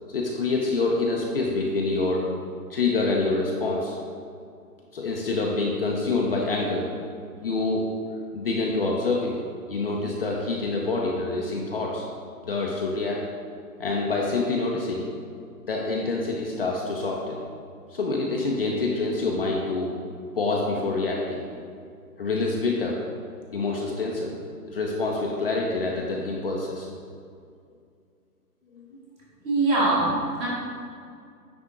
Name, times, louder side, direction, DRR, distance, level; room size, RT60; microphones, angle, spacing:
voice 1, 0.1-2.2 2.7-3.9 4.9-7.0 7.3-7.8 8.3-9.3 9.7-12.1 12.4-13.2 13.8-15.0 15.7-17.4 17.9-19.9 20.4-21.4 22.2-23.0 23.5-24.3 24.7-26.9 28.7-28.8, left 3 dB, 40° left, -2 dB, 0.6 m, -26 dB
voice 2, 29.4-30.5, right 2 dB, 15° right, -7 dB, 1.1 m, -22 dB
9.6 x 3.5 x 3.7 m, 2.3 s
hypercardioid pair, 150°, 47 cm